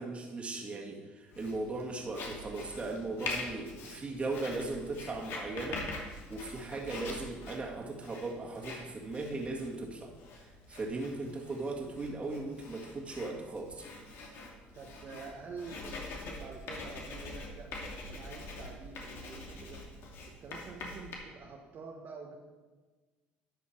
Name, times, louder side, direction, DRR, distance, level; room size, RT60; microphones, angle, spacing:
voice 1, 0.0-5.9 6.3-10.1 10.7-13.9, right 3 dB, 30° right, 0 dB, 2.0 m, -38 dB
Writing, 1.3-21.2, left 2 dB, 65° left, 2.4 m, -44 dB
voice 2, 14.7-17.7 18.1-19.8 20.4-22.4, right 4 dB, 50° right, -1 dB, 1.2 m, -47 dB
11.5 x 7.1 x 4.6 m, 1.3 s
supercardioid pair, 90°, 4 cm